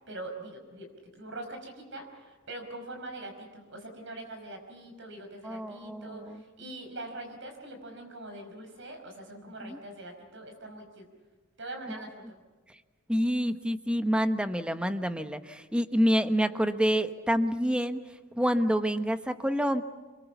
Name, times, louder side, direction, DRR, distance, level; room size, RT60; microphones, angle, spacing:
voice 1, 0.1-11.1 11.6-12.4, right 2 dB, 65° right, 4 dB, 5.2 m, -43 dB
voice 2, 5.4-6.4 9.6-9.8 13.1-18.0 18.4-19.8, equal, 5° right, 9 dB, 1.1 m, -27 dB
27.5 x 22.5 x 7.1 m, 1.3 s
head